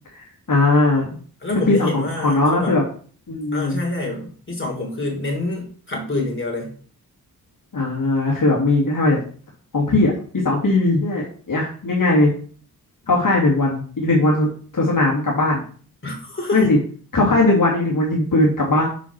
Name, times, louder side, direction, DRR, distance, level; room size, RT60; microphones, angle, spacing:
voice 1, 0.1-1.1 1.7-2.8 3.3-3.8 7.7-9.2 9.7-12.3 13.1-15.6 16.5-16.8 17.1-18.8, left 2 dB, 60° left, -3 dB, 2.1 m, -19 dB
voice 2, 1.4-2.8 3.5-6.7 16.0-16.7, left 2 dB, 30° left, -1 dB, 3.3 m, -26 dB
6.1 x 5.8 x 6.0 m, 0.43 s
wide cardioid pair, 110°, 38 cm